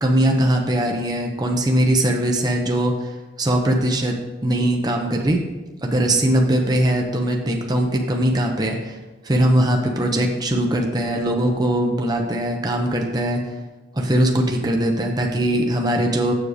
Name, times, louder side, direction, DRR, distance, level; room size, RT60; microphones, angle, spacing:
voice 1, 0.0-3.1 3.4-4.2 4.4-5.4 5.8-9.0 9.2-13.4 13.9-16.3, right 1 dB, 25° right, 1 dB, 0.7 m, -20 dB
7.2 x 6.4 x 5.0 m, 1.2 s
head